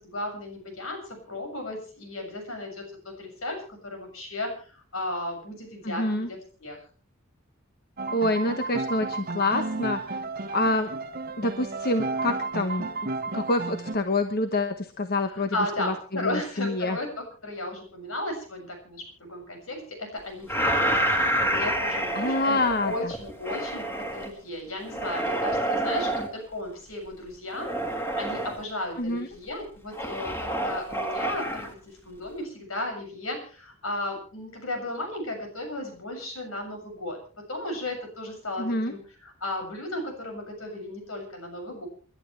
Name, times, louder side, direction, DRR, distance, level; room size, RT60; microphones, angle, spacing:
voice 1, 0.0-6.8 15.3-27.7 28.2-37.2 37.5-41.9, left 1 dB, 75° left, 3 dB, 7.1 m, -35 dB
voice 2, 5.8-6.3 8.1-10.0 10.5-10.9 11.4-12.9 13.3-17.0 22.1-23.1 29.0-29.3 38.6-38.9, left 2 dB, 50° left, 7 dB, 1.2 m, -27 dB
sound 1, 8.0-13.9, right 3 dB, 45° right, 1.1 m, -32 dB
sound 2, 20.5-24.3 24.8-26.3 27.5-28.6 29.9-31.7, right 1 dB, 10° left, 2.4 m, -28 dB
29.5 x 12.0 x 3.3 m, 0.40 s
head